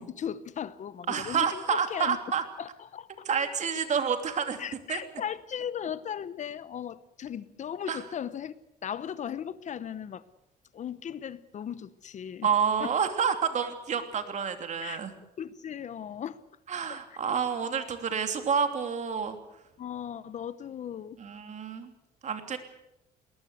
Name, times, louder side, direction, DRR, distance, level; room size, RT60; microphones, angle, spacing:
voice 1, 0.0-2.2 2.6-3.3 4.6-8.5 8.8-10.2 10.7-12.5 12.8-12.9 14.8-15.0 15.4-16.4 16.9-17.2 19.8-21.2, left 9 dB, 45° left, 16 dB, 0.9 m, -37 dB
voice 2, 1.1-2.4 3.2-4.6 4.9-5.0 7.9-8.0 12.4-15.1 16.7-19.4 21.2-21.9 22.2-22.6, right 7 dB, 45° right, 7 dB, 3.0 m, -29 dB
20.5 x 19.0 x 8.2 m, 0.86 s
cardioid pair, 110°, 17 cm